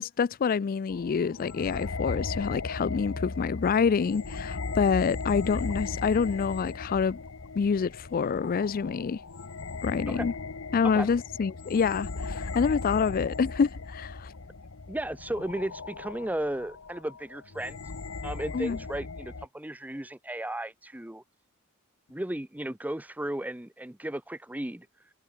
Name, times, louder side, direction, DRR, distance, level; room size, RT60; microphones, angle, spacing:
voice 1, 0.0-7.2 7.6-9.2 9.8-10.3 10.7-14.3 18.5-18.8, left 6 dB, 45° left, 0.4 m, -27 dB
sound 1, 0.9-19.5, left 3 dB, 70° left, 1.1 m, -37 dB
voice 2, 14.9-17.8 18.2-21.2 22.1-24.9, right 1 dB, 5° right, 0.7 m, -35 dB
head